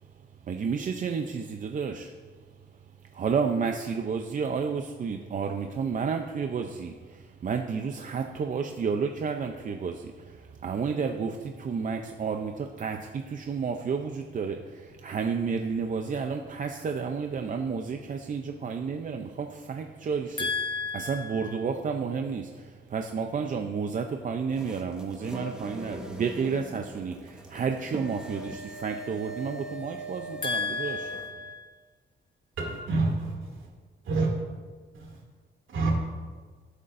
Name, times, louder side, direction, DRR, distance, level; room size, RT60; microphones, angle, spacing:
voice 1, 0.4-2.1 3.1-20.5 20.9-31.1, right 5 dB, 40° right, 4 dB, 0.5 m, -31 dB
voice 2, 20.4-21.5 30.4-31.7, left 5 dB, 25° left, 5 dB, 0.9 m, -32 dB
sound 1, 24.5-31.3, right 1 dB, 5° right, 1.0 m, -41 dB
voice 3, 32.6-33.7 34.0-34.3 34.9-35.2 35.7-36.0, right 3 dB, 75° right, -1 dB, 2.5 m, -28 dB
17.5 x 8.1 x 2.6 m, 1.5 s
wide cardioid pair, 145°, 20 cm